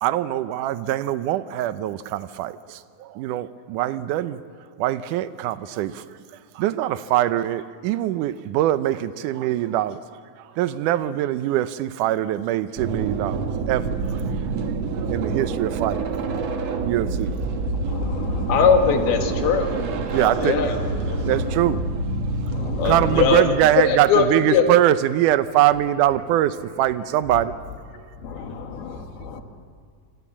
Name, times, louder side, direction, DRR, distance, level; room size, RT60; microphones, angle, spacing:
voice 1, 0.0-4.4 4.8-6.1 6.6-10.0 10.4-13.4 13.7-14.7 15.1-16.0 16.8-17.3 20.1-20.5 21.2-22.0 22.8-27.6 28.4-28.5, right 13 dB, 75° right, 13 dB, 1.9 m, -23 dB
sound 1, 12.8-23.4, right 3 dB, 55° right, 2.2 m, -26 dB
voice 2, 15.0-15.4 15.7-15.8 19.0-19.1 20.1-21.4 28.3-28.6, left 2 dB, 40° left, 0 dB, 6.3 m, -36 dB
voice 3, 17.9-19.8 20.4-20.7 22.5-23.5 24.1-24.7 28.2-29.4, left 6 dB, 80° left, 4 dB, 3.8 m, -21 dB
27.5 x 26.5 x 7.3 m, 2.2 s
omnidirectional pair, 4.4 m